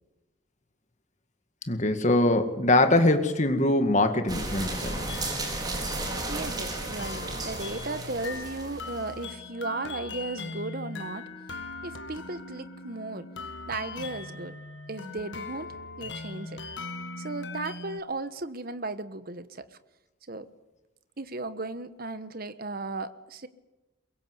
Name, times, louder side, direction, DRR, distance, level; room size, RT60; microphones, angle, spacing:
voice 1, 1.7-5.1, left 2 dB, 35° left, 2.1 m, -23 dB
sound 1, 4.3-9.1, right 2 dB, 20° right, 4.3 m, -34 dB
sound 2, 4.8-18.0, left 3 dB, 60° left, 1.9 m, -40 dB
voice 2, 6.3-11.2 11.8-13.3 13.7-14.6 14.9-16.6 17.2-19.6 20.3-20.5 21.2-23.5, right 2 dB, 45° right, 1.3 m, -36 dB
23.0 x 22.5 x 8.2 m
head